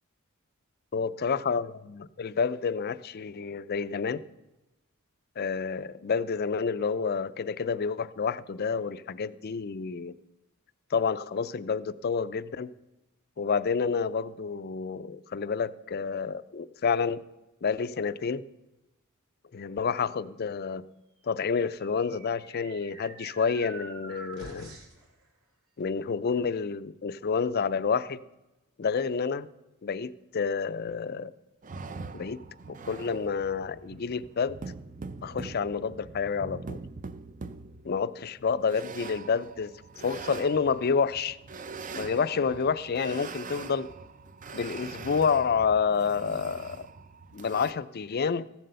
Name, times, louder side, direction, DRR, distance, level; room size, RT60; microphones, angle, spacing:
voice 1, 0.9-4.2 5.4-10.1 10.9-12.7 13.4-17.2 17.6-18.4 19.5-20.8 21.3-24.7 25.8-28.2 28.8-29.5 29.8-31.3 32.1-32.4 32.7-34.6 35.2-36.8 37.8-39.7 40.0-41.4 41.9-43.9 44.5-46.9 47.3-48.5, left 5 dB, 45° left, 0.4 m, -29 dB
sound 1, 21.5-25.1, right 2 dB, 80° right, 3.1 m, -46 dB
sound 2, 31.6-47.7, right 4 dB, 35° right, 0.5 m, -43 dB
14.5 x 7.6 x 6.8 m
head